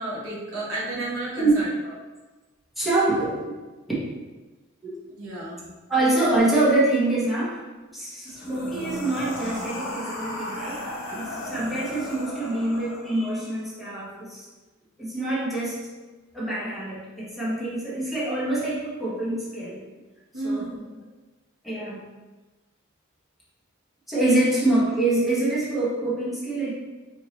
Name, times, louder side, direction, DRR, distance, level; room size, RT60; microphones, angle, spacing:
voice 1, 0.0-1.7 5.2-5.7 20.3-20.8, right 2 dB, 75° right, -5 dB, 1.1 m, -31 dB
voice 2, 2.8-3.4 4.8-5.0 5.9-7.6 7.9-10.8 11.1-14.5 15.0-15.8 16.3-19.8 20.4-20.7 21.6-22.0 24.1-26.7, right 2 dB, ahead, -9 dB, 1.1 m, -25 dB
sound 1, 8.3-13.5, left 1 dB, 70° left, 0.8 m, -35 dB
4.6 x 2.7 x 2.9 m, 1.2 s
head